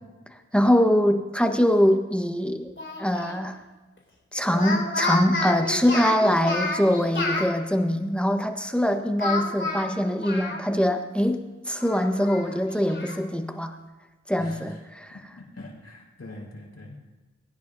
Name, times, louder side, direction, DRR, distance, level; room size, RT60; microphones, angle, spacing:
voice 1, 0.5-2.7 3.0-3.6 4.3-13.8 14.3-15.2, equal, 5° left, 5 dB, 1.2 m, -23 dB
Speech, 2.8-3.4 4.5-7.5 9.2-10.9 11.2-11.3 11.8-13.2, left 3 dB, 40° left, 2.9 m, -30 dB
voice 2, 14.4-14.8 15.3-17.0, left 1 dB, 60° left, -2 dB, 4.6 m, -43 dB
20.0 x 10.0 x 2.7 m, 1.2 s
cardioid pair, 55°, 29 cm